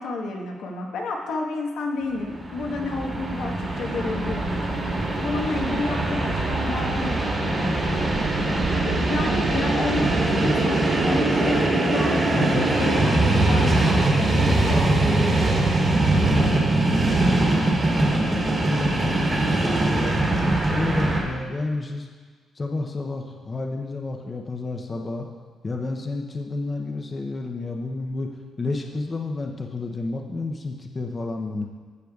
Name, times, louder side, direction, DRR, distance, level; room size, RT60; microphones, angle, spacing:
voice 1, 0.0-4.6 5.2-8.1 8.9-10.8 11.1-15.1, left 3 dB, 90° left, 0 dB, 1.2 m, -30 dB
Train, 2.2-21.2, right 2 dB, 25° right, 1.4 m, -22 dB
voice 2, 16.1-20.1 20.5-22.1 22.6-25.3 25.6-31.7, left 3 dB, 25° left, 2 dB, 0.6 m, -31 dB
15.0 x 6.7 x 2.3 m, 1.5 s
cardioid pair, 155°, 0 cm